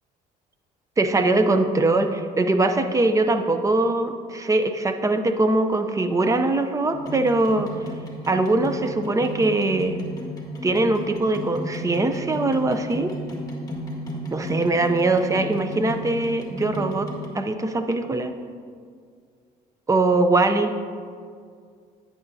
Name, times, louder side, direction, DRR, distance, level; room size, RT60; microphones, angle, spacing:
voice 1, 1.0-7.7 8.3-9.9 10.6-13.1 14.3-17.1 17.3-18.3 19.9-20.7, right 2 dB, 20° right, 7 dB, 0.6 m, -22 dB
sound 1, 6.9-17.3, equal, 20° left, 1.8 m, -34 dB
11.0 x 8.8 x 2.7 m, 2.1 s
cardioid pair, 110°, 17 cm